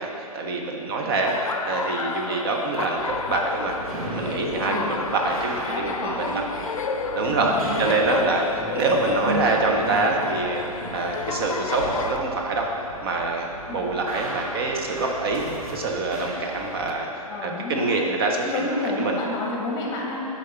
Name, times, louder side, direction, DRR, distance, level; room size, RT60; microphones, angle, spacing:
voice 1, 0.0-3.8 4.1-6.4 7.1-8.4 8.7-10.6 10.9-12.7 13.0-15.4 15.7-17.1 17.4-18.7 19.0-19.2, right 3 dB, 40° right, 1 dB, 0.6 m, -25 dB
Laughter, 1.3-12.2, left 5 dB, 60° left, 0.5 m, -31 dB
sound 1, 2.9-16.9, right 1 dB, 65° right, 1.4 m, -35 dB
voice 2, 4.8-5.1 5.7-6.4 7.6-8.3 13.7-13.8 17.3-17.9 18.4-20.3, left 2 dB, 20° left, -2 dB, 1.0 m, -30 dB
6.4 x 4.2 x 5.6 m, 2.9 s
figure-of-eight pair, 120°, 19 cm